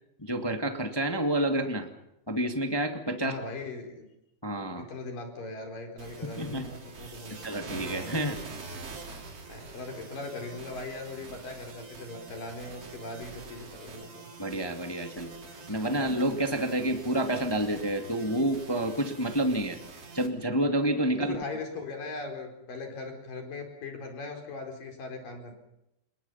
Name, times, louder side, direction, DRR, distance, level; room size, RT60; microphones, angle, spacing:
voice 1, 0.2-1.9 2.3-3.4 4.4-4.8 6.4-6.6 7.0-7.1 7.4-8.4 8.7-8.8 14.4-15.3 15.7-19.8 20.1-21.3, right 1 dB, 15° left, 5 dB, 1.0 m, -29 dB
voice 2, 3.2-4.1 4.7-7.6 9.5-14.3 21.2-25.5, left 3 dB, 65° left, 5 dB, 6.1 m, -39 dB
sound 1, 6.0-20.3, right 3 dB, 40° right, 4.0 m, -45 dB
28.0 x 22.0 x 5.7 m, 0.86 s
omnidirectional pair, 4.3 m